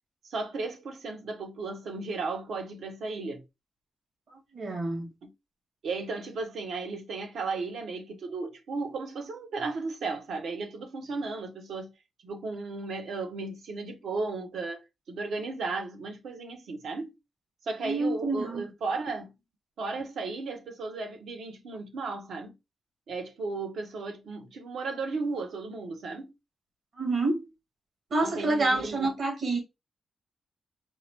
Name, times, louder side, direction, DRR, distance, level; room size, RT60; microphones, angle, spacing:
voice 1, 0.2-3.4 5.2-5.3 5.8-11.9 12.2-17.1 17.6-19.3 19.8-22.5 23.1-26.3 28.2-29.1, right 3 dB, 85° right, 0.9 m, -35 dB
voice 2, 4.5-5.1 17.8-18.6 27.0-27.4 28.1-29.6, right 2 dB, 70° right, 1.7 m, -27 dB
4.7 x 2.1 x 2.9 m
wide cardioid pair, 105°, 0 cm